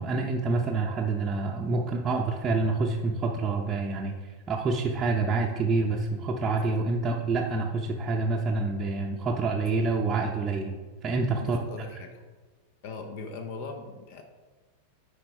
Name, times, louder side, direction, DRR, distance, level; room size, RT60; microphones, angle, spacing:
voice 1, 0.0-10.7 11.0-11.6, right 3 dB, 20° right, -2 dB, 0.7 m, -27 dB
voice 2, 11.4-12.2 12.8-14.2, left 4 dB, 50° left, 5 dB, 0.7 m, -40 dB
10.0 x 4.7 x 3.3 m, 1.4 s
figure-of-eight pair, 90°, 0 cm